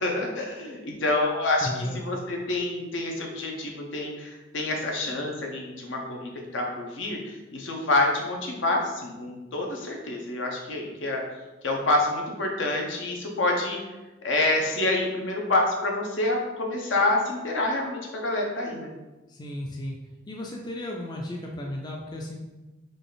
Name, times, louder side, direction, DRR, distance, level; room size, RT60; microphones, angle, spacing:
voice 1, 0.0-1.7 1.9-11.2 11.6-13.8 14.2-18.9, left 2 dB, 70° left, 0 dB, 0.9 m, -27 dB
voice 2, 1.6-2.3 19.3-20.0 20.3-22.4, left 1 dB, 20° left, -1 dB, 0.4 m, -34 dB
3.9 x 3.3 x 3.9 m, 1.1 s
head